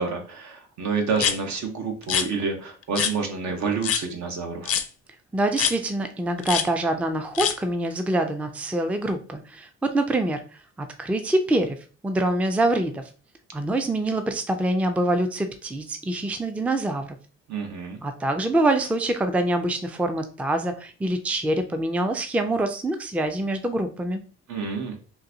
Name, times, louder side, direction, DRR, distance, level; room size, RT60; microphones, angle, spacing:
voice 1, 0.0-4.7 17.5-18.0 24.5-25.0, right 4 dB, 65° right, 3 dB, 1.0 m, -28 dB
sound 1, 1.2-1.4 2.0-2.3 3.0-3.1 3.8-4.0 4.6-4.9 5.6-5.7 6.4-6.7 7.3-7.5, left 8 dB, 50° left, 0.5 m, -24 dB
voice 2, 5.3-10.4 10.8-11.8 12.0-13.0 13.5-17.2 18.0-24.2, right 1 dB, 5° right, 7 dB, 0.4 m, -25 dB
3.8 x 2.6 x 2.8 m, 0.38 s
cardioid pair, 90°, 30 cm